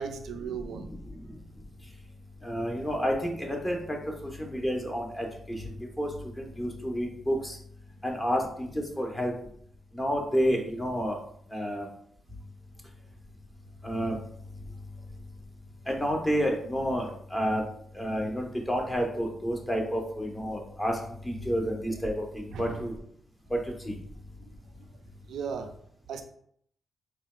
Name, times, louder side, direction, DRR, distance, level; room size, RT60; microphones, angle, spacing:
voice 1, 0.0-0.9 22.5-23.0 24.4-24.5 25.3-25.8 26.1-26.2, right 6 dB, 80° right, 0.3 m, -36 dB
voice 2, 0.7-1.3 2.4-4.0 4.2-7.6 8.0-9.3 9.9-11.2 11.5-11.9 13.8-14.2 15.9-17.6 17.9-22.9 23.5-23.6 23.8-23.9, equal, 15° left, 0.9 m, -30 dB
4.2 x 2.3 x 2.2 m
supercardioid pair, 55°, 0 cm